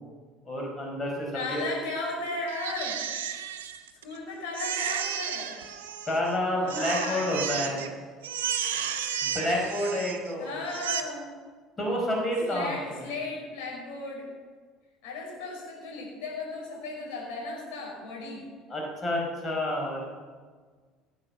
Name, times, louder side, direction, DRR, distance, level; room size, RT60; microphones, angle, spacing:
voice 1, 0.4-1.6 6.1-7.9 9.2-10.5 11.8-13.0 18.7-20.1, left 1 dB, 25° left, -1 dB, 5.0 m, -29 dB
voice 2, 1.3-3.0 4.0-5.6 6.5-7.8 10.4-11.3 12.5-14.3 15.0-18.4, left 3 dB, 65° left, -2 dB, 5.5 m, -36 dB
Crying sobbing, 2.5-4.2 4.5-6.3 6.7-7.9 8.2-10.3 10.7-11.0, right 9 dB, 70° right, 1.0 m, -33 dB
17.0 x 8.1 x 7.0 m, 1.5 s
figure-of-eight pair, 60°, 0 cm